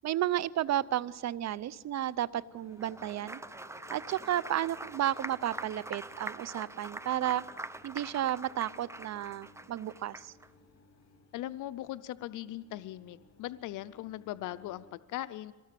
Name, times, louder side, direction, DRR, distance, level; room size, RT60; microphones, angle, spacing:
voice 1, 0.0-3.4 3.9-7.4 7.8-10.3, right 12 dB, 60° right, 20 dB, 0.6 m, -32 dB
sound 1, 0.5-14.9, left 2 dB, 60° left, 4.4 m, -61 dB
Applause, 2.7-10.5, right 2 dB, 10° right, 0.8 m, -44 dB
voice 2, 11.3-15.5, left 14 dB, 80° left, 14 dB, 0.6 m, -39 dB
24.5 x 18.5 x 7.5 m, 1.3 s
cardioid pair, 90°, 30 cm